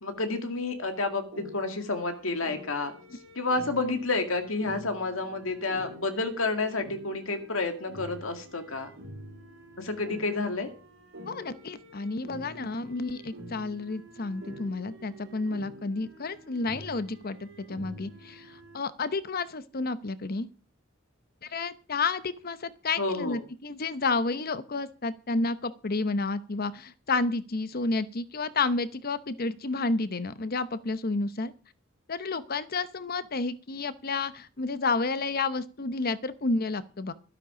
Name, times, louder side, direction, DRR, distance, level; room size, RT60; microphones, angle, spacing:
voice 1, 0.0-2.9 3.3-8.9 9.8-10.7 23.0-23.4, left 3 dB, 90° left, 7 dB, 2.2 m, -30 dB
sound 1, 1.3-18.8, equal, 75° right, 3.4 m, -47 dB
voice 2, 11.3-20.5 21.4-31.5 32.1-37.1, left 3 dB, 50° left, 14 dB, 0.8 m, -31 dB
12.5 x 11.5 x 5.0 m, 0.37 s
head